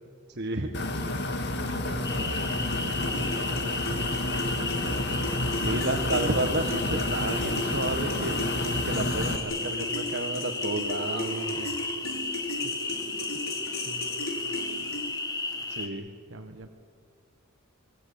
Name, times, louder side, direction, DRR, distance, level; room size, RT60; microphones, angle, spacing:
voice 1, 0.3-0.7 3.5-3.6 5.6-8.3 8.8-11.7 13.1-13.3 15.5-16.1, right 2 dB, 55° right, 3 dB, 1.6 m, -31 dB
sound 1, 0.7-9.4, left 1 dB, 55° left, 2.1 m, -30 dB
voice 2, 1.5-4.6 12.5-12.8 13.8-15.1 15.4-15.6 16.3-16.7, right 2 dB, 70° right, 6 dB, 1.3 m, -47 dB
sound 2, 2.0-15.9, left 3 dB, 20° left, 1.8 m, -34 dB
sound 3, 2.7-15.3, left 1 dB, 80° left, 4.6 m, -36 dB
27.0 x 22.0 x 8.6 m, 2.1 s
head